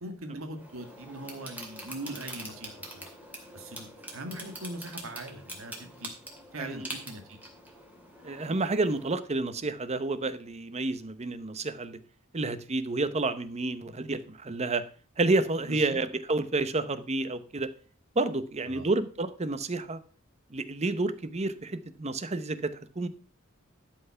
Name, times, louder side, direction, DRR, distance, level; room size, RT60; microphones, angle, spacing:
voice 1, 0.0-3.1 3.5-6.1 6.5-7.4 15.7-16.0 18.7-18.9, right 1 dB, 85° right, 5 dB, 1.7 m, -41 dB
sound 1, 0.5-9.1, right 1 dB, 10° right, 2.4 m, -44 dB
voice 2, 8.2-12.0 12.3-14.8 15.2-17.7 18.2-20.0 20.5-23.1, right 2 dB, 35° right, 13 dB, 0.8 m, -30 dB
12.0 x 5.7 x 5.6 m, 0.40 s
head